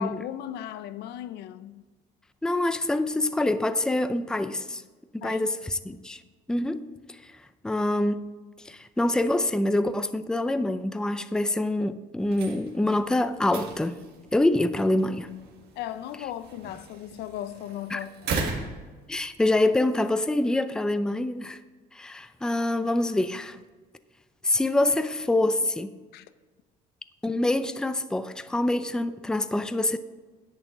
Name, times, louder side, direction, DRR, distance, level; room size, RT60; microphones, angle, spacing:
voice 1, 0.0-1.9 5.2-5.5 15.8-18.1 26.1-26.3, left 11 dB, 80° left, 0.6 m, -36 dB
voice 2, 2.4-4.8 5.1-6.2 6.5-6.9 7.6-8.2 8.7-14.0 14.3-15.3 17.9-18.0 19.1-21.6 21.9-23.6 24.4-25.9 27.2-30.0, left 1 dB, 5° left, 0.4 m, -25 dB
sound 1, 12.2-19.7, right 4 dB, 75° right, 1.7 m, -38 dB
10.5 x 8.4 x 3.7 m
cardioid pair, 110°, 17 cm